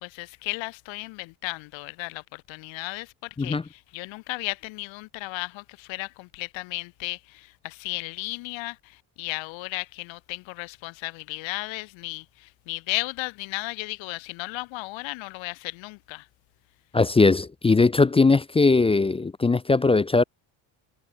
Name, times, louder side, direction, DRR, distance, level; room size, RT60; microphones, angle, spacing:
voice 1, 0.0-16.2, left 23 dB, 85° left, 1.6 m, -35 dB
voice 2, 16.9-20.2, left 3 dB, 15° left, 0.4 m, -20 dB
cardioid pair, 95°, 44 cm